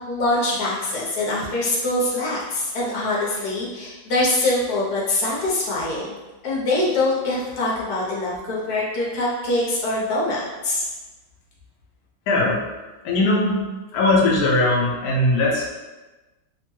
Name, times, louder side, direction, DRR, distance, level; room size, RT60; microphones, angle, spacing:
voice 1, 0.1-6.2 6.4-10.9, left 2 dB, 60° left, -5 dB, 1.1 m, -24 dB
voice 2, 12.3-12.6 13.0-13.7 13.9-15.7, left 2 dB, 90° left, -3 dB, 0.8 m, -19 dB
3.3 x 2.2 x 3.0 m, 1.2 s
omnidirectional pair, 2.3 m